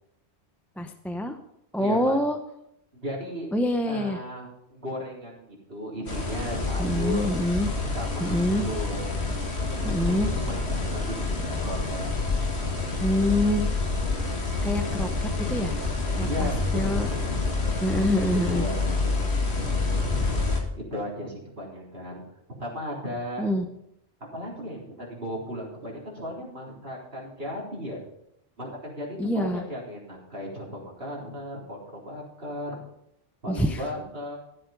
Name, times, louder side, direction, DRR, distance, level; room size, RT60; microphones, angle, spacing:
voice 1, 0.8-1.4 1.7-2.4 3.5-4.2 6.8-7.7 8.2-8.7 9.8-10.3 13.0-13.7 14.6-15.7 16.1-17.1 17.8-18.7 23.4-23.7 29.2-29.6 33.5-33.8, left 1 dB, ahead, 6 dB, 0.6 m, -26 dB
voice 2, 1.8-2.2 2.9-3.5 3.9-7.3 7.8-9.1 10.0-12.1 16.3-17.6 18.1-19.0 20.9-22.2 22.6-23.5 24.3-28.0 28.6-32.8 33.4-34.4, equal, 60° right, -4 dB, 4.0 m, -36 dB
sound 1, 6.1-20.6, left 3 dB, 75° left, 2.2 m, -28 dB
14.0 x 7.6 x 5.2 m, 0.78 s
omnidirectional pair, 1.1 m